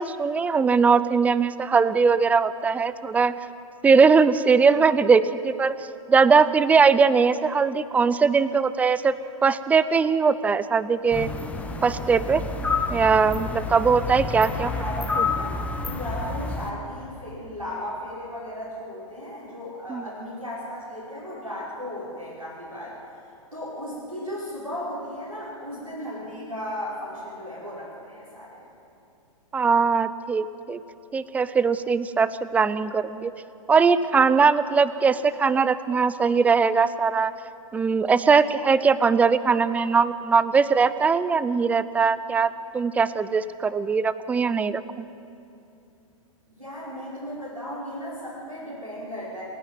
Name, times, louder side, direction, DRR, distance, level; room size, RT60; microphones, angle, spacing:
voice 1, 0.0-3.3 3.8-5.7 6.1-9.1 9.4-11.3 11.8-12.4 12.9-14.7 19.9-20.0 29.5-30.8 31.1-33.3 33.7-37.3 37.7-45.1, right 5 dB, 10° right, 16 dB, 0.4 m, -20 dB
sound 1, 11.1-16.7, left 4 dB, 5° left, 1.3 m, -29 dB
voice 2, 14.5-22.9 23.5-28.7 46.6-49.4, left 1 dB, 90° right, -9 dB, 6.0 m, -35 dB
27.5 x 10.5 x 9.3 m, 2.7 s
figure-of-eight pair, 110°, 18 cm